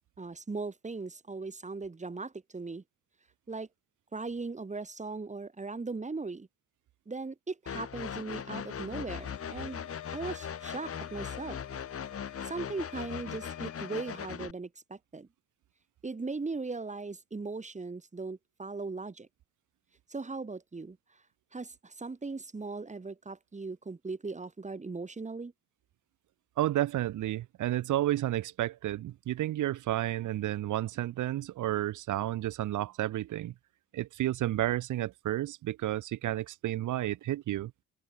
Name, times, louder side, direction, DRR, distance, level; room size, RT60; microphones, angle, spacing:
voice 1, 0.2-2.8 3.5-3.7 4.1-6.5 7.1-9.9 10.1-11.6 12.4-15.3 16.0-19.3 20.1-21.0 21.5-25.5, right 3 dB, 25° right, 3.4 m, -38 dB
sound 1, 7.7-14.5, left 7 dB, 50° left, 4.1 m, -39 dB
sound 2, 9.2-14.2, left 15 dB, 85° left, 2.5 m, -48 dB
voice 2, 26.6-33.5 33.9-37.7, right 14 dB, 80° right, 1.8 m, -31 dB
cardioid pair, 90°, 30 cm